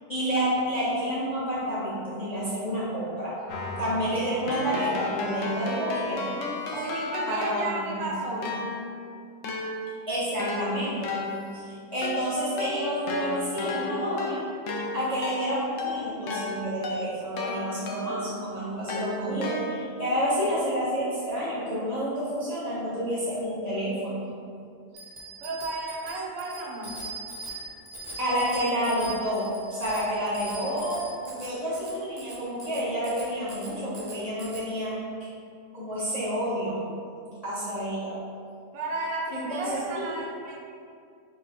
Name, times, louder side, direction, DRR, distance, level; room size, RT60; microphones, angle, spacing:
voice 1, 0.1-3.3 3.8-6.4 7.3-8.1 10.1-11.2 11.5-14.4 14.9-24.2 28.2-31.0 31.3-34.9 35.2-35.3 35.7-36.8 37.4-38.2 39.3-40.1, equal, 40° left, -10 dB, 0.5 m, -29 dB
Keyboard (musical), 3.5-8.0 8.4-18.3 18.9-20.1, left 3 dB, 75° left, 0.7 m, -34 dB
voice 2, 6.7-8.6 25.4-27.0 38.7-40.6, right 2 dB, 90° right, -1 dB, 1.4 m, -33 dB
Bicycle bell, 24.9-34.6, right 2 dB, 50° right, 0.7 m, -41 dB
4.8 x 2.1 x 4.1 m, 2.4 s
omnidirectional pair, 1.9 m